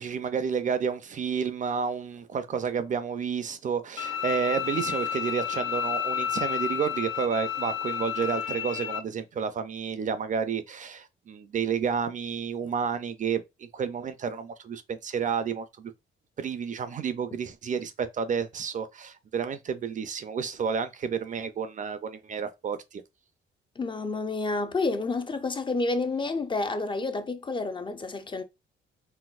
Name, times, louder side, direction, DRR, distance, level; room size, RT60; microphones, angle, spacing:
voice 1, 0.0-15.9 16.4-23.0, right 6 dB, 40° right, 0.4 m, -30 dB
Bowed string instrument, 4.0-9.0, left 8 dB, 80° left, 0.5 m, -31 dB
voice 2, 23.8-28.4, left 3 dB, 25° left, 0.4 m, -29 dB
4.0 x 2.0 x 2.4 m
cardioid pair, 90°, 20 cm